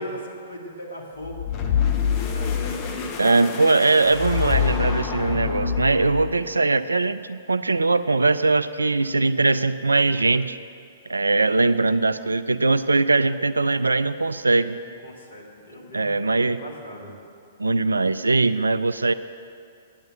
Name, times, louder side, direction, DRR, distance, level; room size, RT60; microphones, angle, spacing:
voice 1, 0.0-1.5 2.1-2.7 14.9-17.2, equal, 65° left, -1 dB, 2.3 m, -39 dB
sound 1, 1.2-6.5, left 7 dB, 30° left, 1.1 m, -26 dB
voice 2, 3.2-10.6 11.1-14.8 15.9-16.6 17.6-19.1, right 3 dB, 80° right, 14 dB, 0.4 m, -21 dB
9.2 x 9.0 x 7.6 m, 2.3 s
figure-of-eight pair, 110°, 0 cm